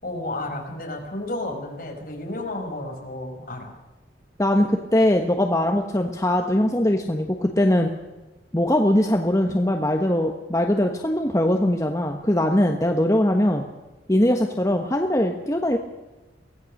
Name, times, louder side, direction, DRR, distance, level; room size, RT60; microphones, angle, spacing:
voice 1, 0.0-3.7, left 2 dB, 50° left, 1 dB, 5.0 m, -32 dB
voice 2, 4.4-7.9 8.5-13.7 14.1-15.8, left 1 dB, 15° left, 3 dB, 1.2 m, -21 dB
24.0 x 16.5 x 6.6 m, 1.1 s
head